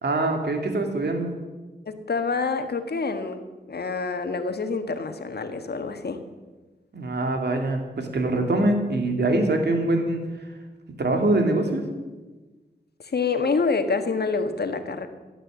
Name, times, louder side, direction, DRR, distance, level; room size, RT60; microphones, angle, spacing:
voice 1, 0.0-1.3 6.9-10.2 11.0-11.8, right 2 dB, 70° right, 4 dB, 2.6 m, -23 dB
voice 2, 1.9-3.4 3.7-6.2 13.0-15.1, left 4 dB, 65° left, 8 dB, 1.5 m, -27 dB
15.5 x 9.0 x 7.5 m, 1.2 s
cardioid pair, 45°, 18 cm